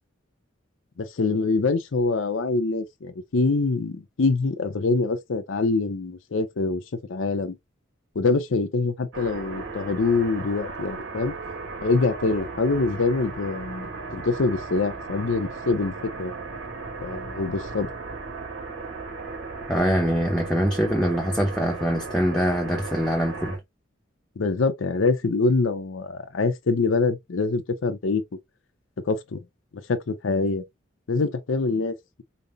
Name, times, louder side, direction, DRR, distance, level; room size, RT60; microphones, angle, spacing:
voice 1, 1.0-6.8 7.1-7.6 8.2-11.3 11.8-16.3 17.0-17.9 24.4-28.2 29.1-29.4 29.9-30.6 31.1-32.2, left 3 dB, 75° left, 0.6 m, -25 dB
sound 1, 9.1-23.6, right 3 dB, 75° right, 1.7 m, -36 dB
voice 2, 19.7-23.6, equal, 5° left, 0.6 m, -23 dB
5.1 x 2.1 x 2.6 m
head